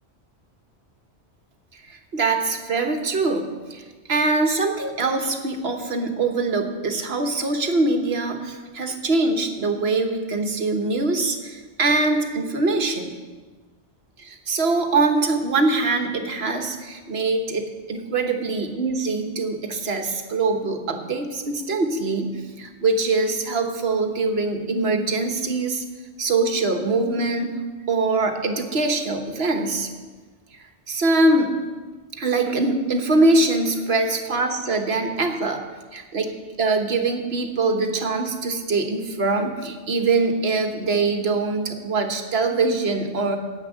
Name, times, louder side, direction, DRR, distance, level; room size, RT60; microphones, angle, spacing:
voice 1, 1.9-3.8 4.1-13.1 14.2-25.8 26.2-27.6 27.9-29.9 30.9-31.5 32.2-35.6 35.9-43.4, right 3 dB, 65° right, 5 dB, 1.5 m, -23 dB
10.0 x 8.9 x 7.3 m, 1.4 s
omnidirectional pair, 1.2 m